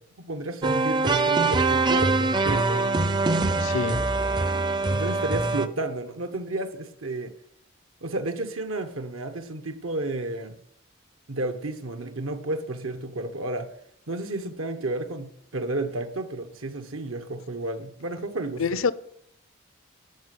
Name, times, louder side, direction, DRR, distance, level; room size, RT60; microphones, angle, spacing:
voice 1, 0.2-2.9 4.9-7.3 8.0-10.6 11.3-13.7 14.1-18.6, right 2 dB, 80° right, 6 dB, 1.2 m, -32 dB
sound 1, 0.6-5.7, right 3 dB, 20° right, 0.5 m, -23 dB
voice 2, 3.6-4.0 18.6-18.9, left 5 dB, 85° left, 16 dB, 0.7 m, -26 dB
12.5 x 6.0 x 9.3 m, 0.71 s
head